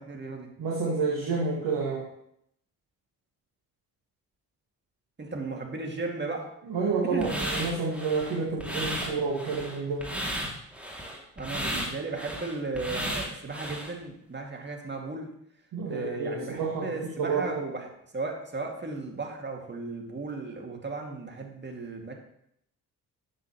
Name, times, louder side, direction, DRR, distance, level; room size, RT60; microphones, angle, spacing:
voice 1, 0.1-0.5 5.2-6.5 7.1-7.4 11.4-15.3 15.9-17.9 18.1-22.1, right 3 dB, 25° right, 1 dB, 2.4 m, -35 dB
voice 2, 0.6-2.0 6.7-10.1 15.7-17.5, right 4 dB, 55° right, -3 dB, 2.1 m, -29 dB
sound 1, 7.2-13.9, equal, 5° right, 2.6 m, -34 dB
12.5 x 7.5 x 3.1 m, 0.73 s
figure-of-eight pair, 45°, 45 cm